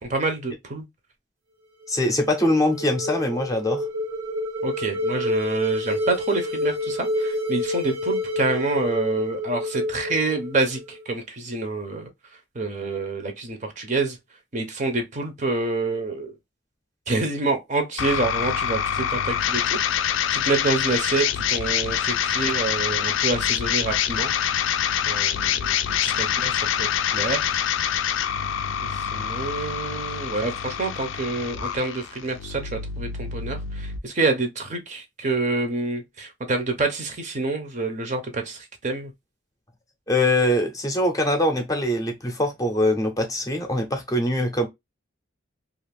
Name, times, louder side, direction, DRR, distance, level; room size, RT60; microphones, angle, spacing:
voice 1, 0.0-0.8 4.6-12.1 12.5-14.2 14.5-16.3 17.1-24.3 25.1-27.5 28.8-39.1, right 3 dB, 40° right, 0.6 m, -27 dB
sound 1, 1.8-11.0, left 1 dB, 75° right, 0.9 m, -28 dB
voice 2, 1.9-3.8 40.1-44.7, left 1 dB, 20° left, 0.6 m, -23 dB
sound 2, 18.0-34.0, left 9 dB, 75° left, 0.3 m, -26 dB
2.5 x 2.4 x 3.3 m
head